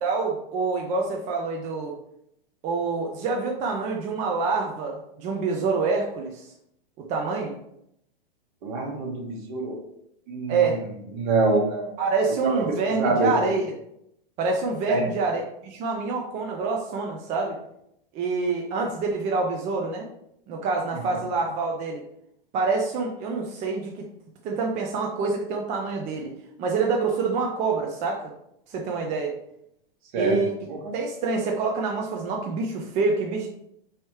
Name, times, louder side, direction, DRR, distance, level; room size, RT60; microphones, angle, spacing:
voice 1, 0.0-1.9 2.6-6.5 7.0-7.6 10.5-10.8 12.0-13.7 14.4-17.6 18.1-20.1 20.5-22.0 22.5-24.1 24.4-26.3 26.6-28.3 28.7-29.3 30.1-30.5 30.9-33.5, right 4 dB, 25° right, 0 dB, 0.5 m, -26 dB
voice 2, 8.6-9.8 10.3-10.8 11.1-11.9 12.4-13.5 14.9-15.1 30.1-30.4 30.7-30.9, right 3 dB, 55° right, 2 dB, 1.2 m, -25 dB
4.3 x 3.1 x 3.1 m, 0.76 s
hypercardioid pair, 130°, 29 cm